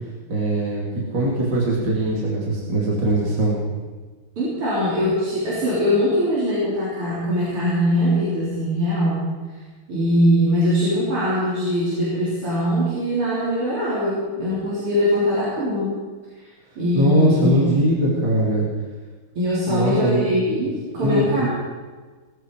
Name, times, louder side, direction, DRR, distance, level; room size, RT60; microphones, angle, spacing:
voice 1, 0.3-0.9 1.1-3.6 17.0-18.7 19.7-20.3 21.0-21.5, right 1 dB, 55° right, -4 dB, 3.6 m, -21 dB
voice 2, 4.4-9.3 9.9-15.9 16.8-17.6 19.4-21.5, equal, 90° right, -8 dB, 4.7 m, -21 dB
19.5 x 14.0 x 4.7 m, 1.4 s
omnidirectional pair, 2.4 m